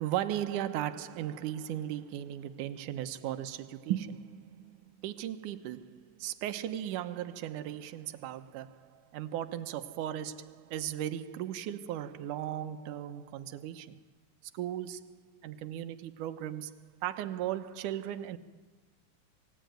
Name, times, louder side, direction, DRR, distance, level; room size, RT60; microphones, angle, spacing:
voice 1, 0.0-14.0 14.5-18.4, right 11 dB, 75° right, 2.4 m, -37 dB
27.0 x 18.5 x 9.2 m
omnidirectional pair, 3.8 m